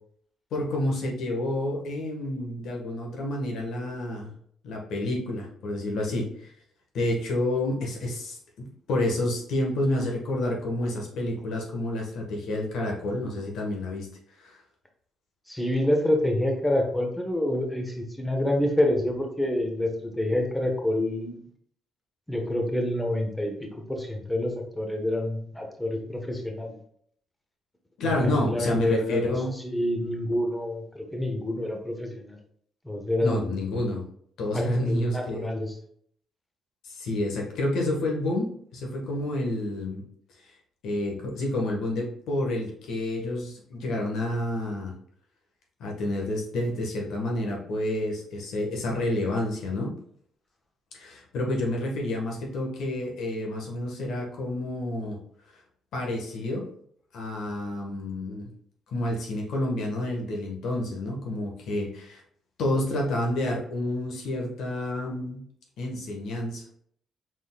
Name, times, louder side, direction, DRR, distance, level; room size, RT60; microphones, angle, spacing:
voice 1, 0.5-4.3 4.6-6.5 6.9-8.4 8.9-14.1 14.4-14.6 28.0-29.5 33.2-34.0 34.4-35.5 36.8-40.0 40.8-44.9 45.8-49.9 50.9-55.2 55.9-56.6 57.1-58.5 58.9-62.2 62.6-65.4 65.8-66.6, left 1 dB, 80° left, 0 dB, 1.4 m, -29 dB
voice 2, 15.5-21.4 22.3-26.8 28.2-32.4 32.8-33.5 34.5-35.7, left 1 dB, 10° left, 2 dB, 1.1 m, -27 dB
5.0 x 3.8 x 2.3 m, 0.63 s
cardioid pair, 90°, 0 cm